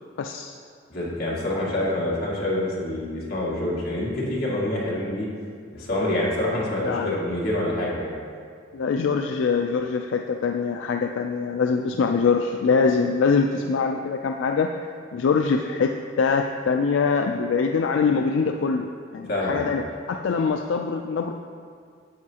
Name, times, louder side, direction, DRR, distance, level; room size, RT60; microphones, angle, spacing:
voice 1, 0.2-0.6 6.8-7.2 8.7-14.7 15.1-18.9 19.1-19.8 20.1-21.3, left 5 dB, 85° left, 4 dB, 0.4 m, -23 dB
voice 2, 0.9-5.3 5.7-8.1 19.3-19.8, left 1 dB, 55° left, -6 dB, 2.1 m, -26 dB
9.3 x 7.6 x 2.9 m, 2.2 s
head